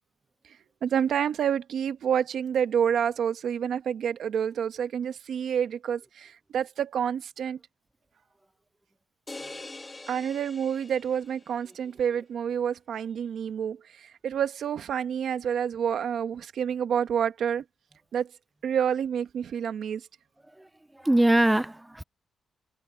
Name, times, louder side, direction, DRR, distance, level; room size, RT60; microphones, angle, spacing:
voice 1, 0.8-7.6 10.1-17.6 18.1-18.3 18.6-20.1, right 8 dB, 70° right, 1.5 m, -28 dB
sound 1, 9.3-11.6, left 2 dB, 15° left, 1.6 m, -43 dB
voice 2, 20.9-22.0, right 1 dB, 10° right, 0.4 m, -22 dB
wide cardioid pair, 165°, 0 cm